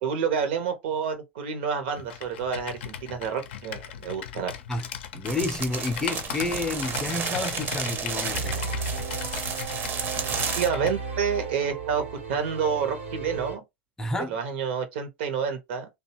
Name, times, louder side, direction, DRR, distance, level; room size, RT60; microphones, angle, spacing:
voice 1, 0.0-4.5 10.6-13.6 14.3-15.9, right 7 dB, 65° right, 0.8 m, -29 dB
Computer keyboard, 1.9-11.0, left 9 dB, 65° left, 0.5 m, -38 dB
voice 2, 4.7-8.6 14.0-14.4, left 2 dB, 10° left, 0.5 m, -30 dB
sound 1, 5.3-10.7, right 6 dB, 35° right, 0.6 m, -32 dB
sound 2, 8.3-13.6, right 4 dB, 90° right, 1.1 m, -35 dB
2.7 x 2.3 x 2.8 m
hypercardioid pair, 90°, 6 cm